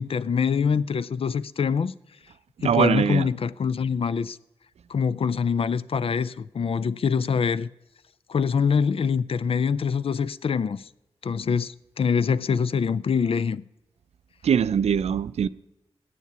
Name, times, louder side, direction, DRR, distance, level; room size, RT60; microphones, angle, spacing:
voice 1, 0.0-1.9 2.6-4.4 4.9-7.7 8.3-10.9 11.2-13.6, left 6 dB, 60° left, 0.4 m, -24 dB
voice 2, 2.6-3.3 14.4-15.5, right 8 dB, 75° right, 0.4 m, -22 dB
8.3 x 7.3 x 8.0 m
cardioid pair, 45°, 11 cm